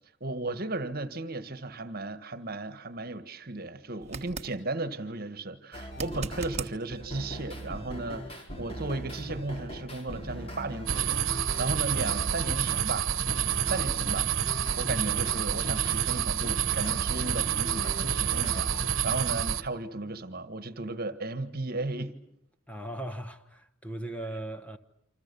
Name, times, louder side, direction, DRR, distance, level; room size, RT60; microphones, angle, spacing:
voice 1, 0.2-13.1 13.7-22.1, right 2 dB, 50° right, 1.6 m, -35 dB
sound 1, 4.0-4.5 5.9-6.7 9.7-9.8, right 4 dB, 30° right, 1.4 m, -37 dB
sound 2, 5.7-6.5 6.9-12.9 13.3-18.9, right 1 dB, 30° left, 4.4 m, -40 dB
sound 3, 10.9-19.6, right 9 dB, 85° right, 1.2 m, -28 dB
voice 2, 22.7-24.8, right 1 dB, 5° left, 1.2 m, -38 dB
28.5 x 26.0 x 7.0 m
head